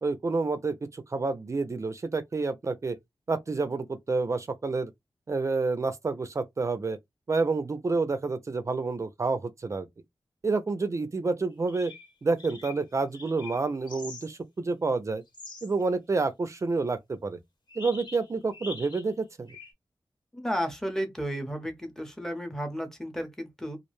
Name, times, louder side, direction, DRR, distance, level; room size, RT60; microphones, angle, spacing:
voice 1, 0.0-3.0 3.3-4.9 5.3-7.0 7.3-9.9 10.4-11.9 12.2-15.2 15.6-17.4 17.8-19.5, right 3 dB, 40° right, 0.4 m, -29 dB
sound 1, 11.5-12.1 12.4-14.3 14.7-14.8 15.3-15.7 17.7-19.1 19.5-19.7, left 4 dB, 70° left, 1.3 m, -44 dB
voice 2, 20.3-23.8, equal, 5° left, 0.7 m, -33 dB
2.4 x 2.1 x 3.0 m
wide cardioid pair, 110°, 8 cm